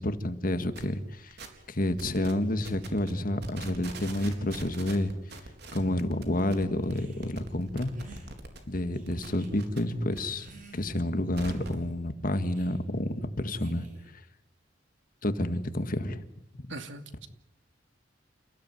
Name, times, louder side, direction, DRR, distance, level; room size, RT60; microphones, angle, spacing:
voice 1, 0.0-1.4 1.7-5.1 5.7-7.9 8.7-10.5 10.7-13.9 15.2-16.3 16.6-16.7, left 1 dB, 50° left, 9 dB, 1.8 m, -29 dB
mic distortion, 0.7-0.9 1.3-1.7 2.0-2.3 2.6-3.1 3.4-8.6 8.9-10.2 10.5-11.8, right 2 dB, 65° right, 4.2 m, -43 dB
sound 1, 6.8-7.4 7.9-8.3 8.9-9.5 10.1-11.1 11.5-11.9 12.5-12.8 13.5-14.2, right 1 dB, 50° right, 6.6 m, -49 dB
voice 2, 16.7-17.3, right 3 dB, 85° right, 8 dB, 2.5 m, -41 dB
29.5 x 16.5 x 9.5 m, 0.85 s
head